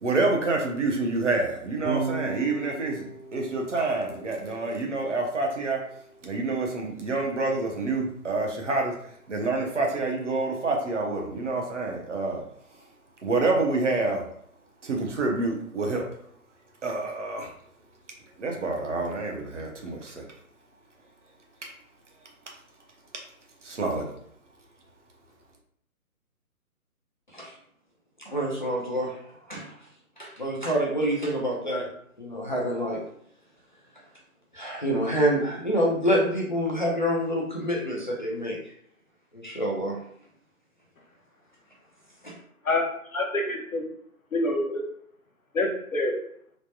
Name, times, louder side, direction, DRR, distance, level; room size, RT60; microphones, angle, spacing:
voice 1, 0.0-3.1 3.3-5.8 6.2-8.9 9.3-12.4 13.2-14.2 14.8-16.0 16.8-17.5 18.4-20.2 23.6-24.0, right 3 dB, 55° right, 0 dB, 0.8 m, -27 dB
Electric guitar / Bass guitar, 1.8-8.2, right 5 dB, 30° right, 0.4 m, -39 dB
voice 2, 28.3-29.2 29.5-29.7 30.2-31.9 32.2-33.0 34.5-38.6 39.3-40.0 42.2-42.3, equal, 35° left, -4 dB, 0.5 m, -27 dB
voice 3, 42.6-43.8 44.3-44.8 45.5-46.1, left 2 dB, 65° left, 1 dB, 0.9 m, -27 dB
3.2 x 2.1 x 2.7 m, 0.66 s
figure-of-eight pair, 140°, 44 cm